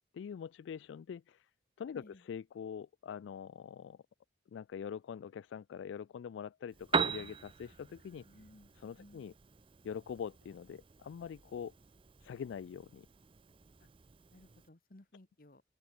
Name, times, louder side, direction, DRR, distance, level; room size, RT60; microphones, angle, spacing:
voice 1, 0.0-1.5 1.8-4.0 4.5-8.3 8.8-9.3 9.8-11.7 12.2-13.1, left 7 dB, 85° left, 0.3 m, -44 dB
voice 2, 1.9-2.2 8.2-9.3 13.8-13.9 14.3-15.6, left 1 dB, 50° left, 1.3 m, -59 dB
Piano, 6.7-14.7, right 5 dB, 30° right, 0.5 m, -41 dB
open air
head